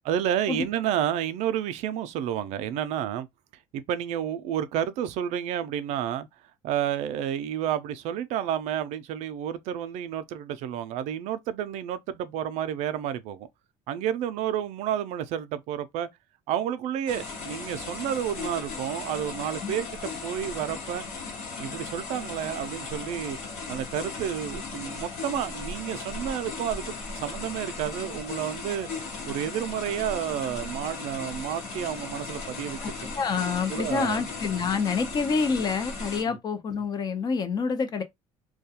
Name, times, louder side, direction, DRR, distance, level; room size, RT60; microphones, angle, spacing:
voice 1, 0.1-3.3 3.7-6.3 6.6-13.5 13.9-16.1 16.5-21.0 21.6-23.4 23.7-28.9 29.3-32.8 33.7-34.2 36.3-36.4, right 10 dB, 70° right, 0.4 m, -30 dB
sound 1, 17.1-36.2, left 4 dB, 70° left, 1.1 m, -37 dB
voice 2, 32.8-38.0, left 5 dB, 35° left, 0.5 m, -27 dB
2.3 x 2.2 x 2.7 m
cardioid pair, 115°, 12 cm